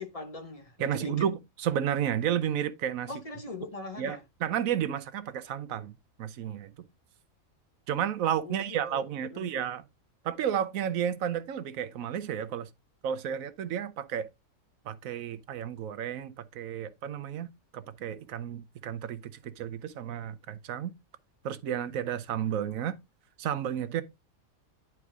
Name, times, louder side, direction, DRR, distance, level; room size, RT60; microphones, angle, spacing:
voice 1, 0.0-1.3 3.1-4.2 8.4-9.0 9.3-9.5, left 2 dB, 30° left, 0.9 m, -41 dB
voice 2, 0.8-3.1 4.0-5.9 6.2-6.9 7.9-9.8 10.2-12.7 13.0-14.3 14.8-20.9 21.4-22.9 23.4-24.0, right 9 dB, 75° right, 1.2 m, -32 dB
9.7 x 4.6 x 3.6 m
omnidirectional pair, 1.5 m